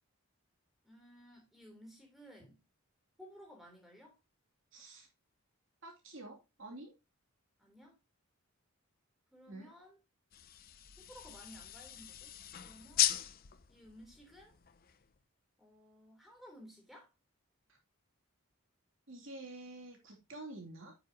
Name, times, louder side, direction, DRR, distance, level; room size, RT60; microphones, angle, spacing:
voice 1, 0.8-2.6 3.2-4.2 7.6-8.0 9.3-10.0 11.0-12.3 12.6-13.1 13.7-14.6 15.6-17.1, equal, ahead, 3.3 m, -56 dB
voice 2, 4.7-5.1 5.8-6.9 9.5-9.7 19.1-20.9, right 2 dB, 60° right, 2.9 m, -48 dB
sound 1, 10.3-15.2, left 12 dB, 40° left, 0.6 m, -38 dB
9.3 x 7.5 x 2.8 m
head